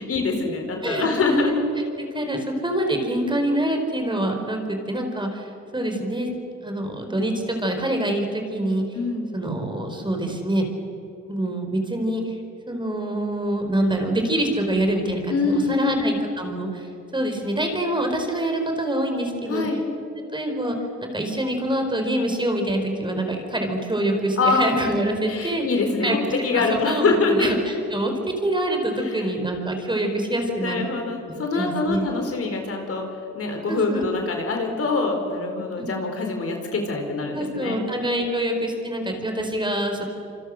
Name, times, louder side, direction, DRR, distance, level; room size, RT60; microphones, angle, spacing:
voice 1, 0.1-1.5 8.9-9.3 15.3-16.0 19.5-19.8 24.4-24.7 25.3-27.5 29.0-29.3 30.6-33.0 33.3-37.8, left 3 dB, 50° left, 4 dB, 4.2 m, -24 dB
voice 2, 0.8-5.5 5.7-6.3 6.6-8.8 9.3-10.7 11.2-12.3 12.7-16.9 17.1-19.7 20.2-20.7 21.0-25.6 26.0-28.1 28.4-30.9 31.5-32.0 33.7-34.1 35.8-35.9 37.3-40.0, right 1 dB, 15° right, 4 dB, 4.3 m, -25 dB
26.5 x 25.5 x 6.5 m, 2.7 s
cardioid pair, 90°, 30 cm